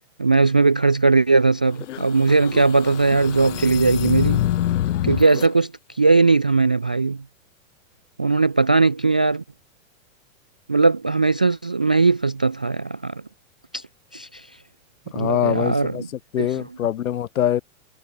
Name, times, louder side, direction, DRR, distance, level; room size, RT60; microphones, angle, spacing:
voice 1, 0.2-4.4 5.0-5.7 6.0-7.2 8.2-9.4 10.7-13.2 13.7-13.8 14.1-14.5 15.1-16.1 16.4-16.7, right 3 dB, 5° right, 0.4 m, -19 dB
sound 1, 1.7-5.5, left 12 dB, 55° left, 6.4 m, -26 dB
voice 2, 15.1-16.0 16.3-17.6, left 11 dB, 80° left, 2.5 m, -23 dB
supercardioid pair, 175°, 42 cm